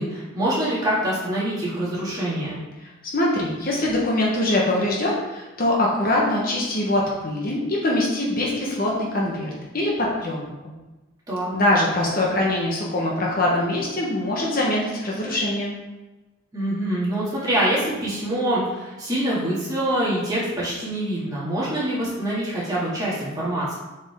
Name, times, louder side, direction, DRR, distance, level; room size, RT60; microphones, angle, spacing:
voice 1, 0.0-2.6 11.3-11.5 16.5-23.7, right 1 dB, 20° right, -8 dB, 2.4 m, -25 dB
voice 2, 2.8-10.4 11.5-15.8, left 1 dB, 45° left, -3 dB, 1.2 m, -23 dB
7.2 x 5.3 x 3.7 m, 1.1 s
head